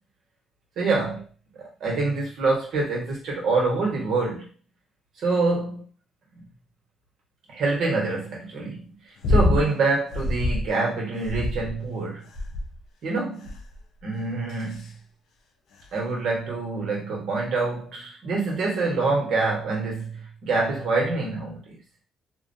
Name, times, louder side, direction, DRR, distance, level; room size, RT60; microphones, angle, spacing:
voice 1, 0.8-1.2 1.5-4.5 5.2-5.9 7.5-8.8 9.3-12.3 13.0-13.5 14.0-14.9 15.9-21.8, right 3 dB, 75° right, 1.1 m, -26 dB
sound 1, 9.2-9.7 10.1-10.7 11.2-11.9 12.3-12.8 13.5-13.8 14.5-14.9 15.8-15.9, left 2 dB, 70° left, 0.4 m, -25 dB
2.4 x 2.1 x 2.6 m
cardioid pair, 90°, 0 cm